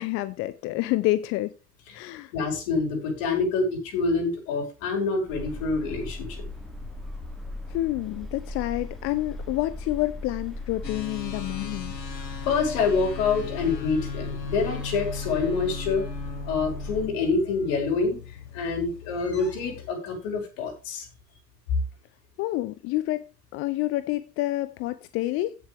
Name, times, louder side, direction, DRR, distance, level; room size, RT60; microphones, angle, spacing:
voice 1, 0.0-1.5 1.9-2.3 7.7-11.9 22.4-23.2 23.5-25.6, left 17 dB, 30° left, 0.5 m, -28 dB
voice 2, 2.3-6.4 12.5-16.0 16.5-21.1, left 4 dB, 50° left, 5.4 m, -26 dB
sound 1, 5.3-17.1, left 2 dB, ahead, 2.6 m, -38 dB
sound 2, 10.8-19.9, left 5 dB, 90° left, 1.1 m, -38 dB
16.0 x 6.9 x 3.4 m
figure-of-eight pair, 85°, 49 cm